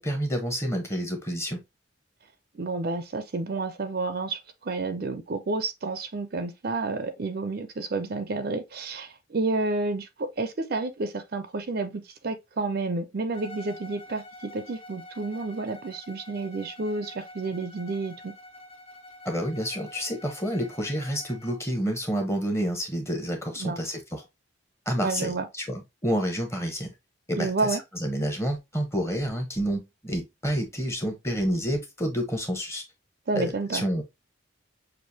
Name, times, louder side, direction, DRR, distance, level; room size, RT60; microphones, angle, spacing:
voice 1, 0.0-1.6 19.2-24.2 24.9-26.9 27.3-32.8 33.3-34.0, equal, 15° left, 1.0 m, -29 dB
voice 2, 2.5-18.3 23.6-23.8 25.0-25.5 27.4-27.8 33.3-33.8, right 3 dB, 50° right, 0.5 m, -30 dB
Bowed string instrument, 13.3-21.7, left 1 dB, 30° left, 0.7 m, -47 dB
6.4 x 2.6 x 2.7 m
head